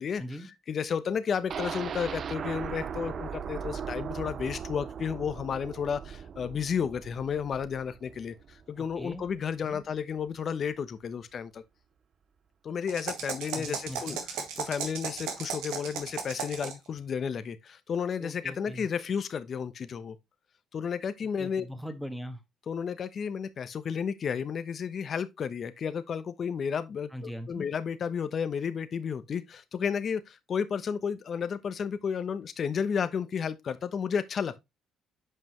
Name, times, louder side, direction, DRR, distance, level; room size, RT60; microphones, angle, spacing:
voice 1, 0.7-11.6 12.6-20.2 20.7-21.7 22.7-34.6, left 7 dB, 50° left, 0.9 m, -32 dB
sound 1, 1.5-9.4 9.7-9.8 10.2-10.3, right 7 dB, 50° right, 0.5 m, -38 dB
voice 2, 8.8-9.2 9.6-9.8 13.5-14.2 18.2-18.9 21.4-22.4 27.1-27.6, equal, 5° right, 1.5 m, -40 dB
sound 2, 12.9-16.9, right 6 dB, 85° right, 1.7 m, -36 dB
7.8 x 5.4 x 3.1 m
cardioid pair, 85°, 0 cm